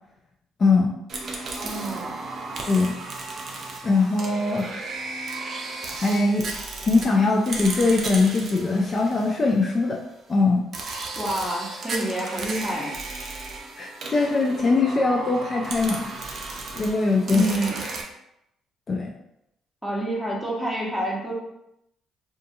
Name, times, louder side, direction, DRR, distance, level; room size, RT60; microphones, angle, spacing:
voice 1, 0.6-0.9 2.7-3.0 3.8-4.7 5.9-6.5 6.8-10.0 10.3-10.6 13.8-16.1 16.8-17.4 18.9-19.1, left 3 dB, 40° left, 0 dB, 0.4 m, -21 dB
sound 1, 1.1-9.9 10.7-18.0, right 3 dB, 55° right, 0.5 m, -34 dB
voice 2, 1.4-2.1 11.2-12.9 17.3-17.8 19.8-21.3, right 1 dB, ahead, -4 dB, 1.0 m, -28 dB
2.6 x 2.5 x 2.5 m, 0.81 s
supercardioid pair, 65°, 0 cm